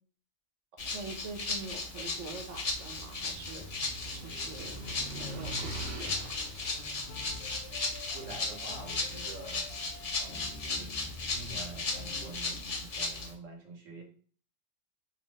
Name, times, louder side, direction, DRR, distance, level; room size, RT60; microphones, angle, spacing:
Rattle (instrument), 0.8-13.3, left 3 dB, 45° left, 0.5 m, -36 dB
voice 1, 0.8-3.7 4.1-4.8 5.1-6.3, right 3 dB, 45° right, 2 dB, 0.5 m, -44 dB
sound 1, 2.3-8.5, right 1 dB, 60° right, 1.0 m, -44 dB
sound 2, 6.8-12.8, left 4 dB, 65° left, 0.9 m, -48 dB
voice 2, 8.1-9.7 10.2-10.9 11.3-14.0, right 3 dB, 85° right, 0 dB, 1.2 m, -46 dB
2.8 x 2.0 x 3.1 m, 0.43 s
omnidirectional pair, 1.2 m